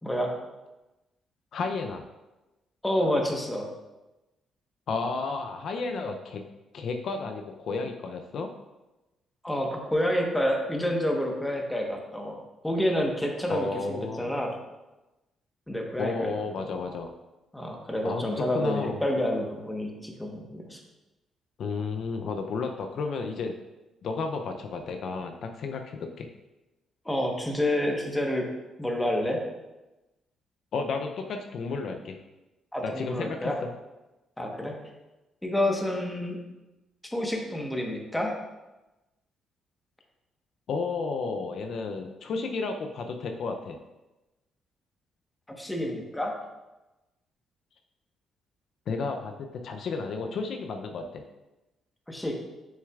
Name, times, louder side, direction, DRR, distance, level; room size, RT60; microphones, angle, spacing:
voice 1, 0.0-0.3 2.8-3.7 9.4-14.5 15.7-16.7 17.5-20.8 27.0-28.5 28.8-29.4 32.7-33.6 34.4-34.8 35.4-36.4 37.0-38.3 45.5-46.3 52.1-52.3, left 1 dB, 10° left, 1 dB, 1.1 m, -29 dB
voice 2, 1.5-2.0 4.9-6.4 6.7-8.5 13.5-14.3 16.0-17.1 18.0-19.0 21.6-23.5 24.0-26.3 30.7-32.2 32.8-33.7 40.7-43.8 48.9-51.2, left 4 dB, 65° left, 5 dB, 0.5 m, -32 dB
6.4 x 6.4 x 2.4 m, 1.0 s
cardioid pair, 90°, 0 cm